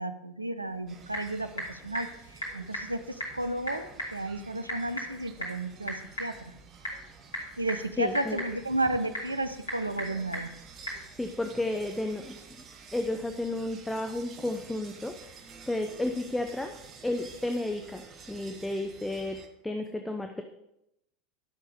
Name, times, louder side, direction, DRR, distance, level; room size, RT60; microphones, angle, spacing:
voice 1, 0.0-6.3 7.6-10.5, right 2 dB, 85° right, 10 dB, 0.6 m, -33 dB
Typing / Telephone, 0.6-11.1, equal, 70° left, 2.7 m, -40 dB
sound 1, 0.9-19.5, right 5 dB, 35° right, 1.3 m, -51 dB
voice 2, 8.0-8.4 11.2-12.6 12.9-16.7 17.0-20.4, left 1 dB, 5° left, 5 dB, 0.8 m, -32 dB
11.0 x 6.5 x 5.1 m, 0.84 s
figure-of-eight pair, 80°, 0 cm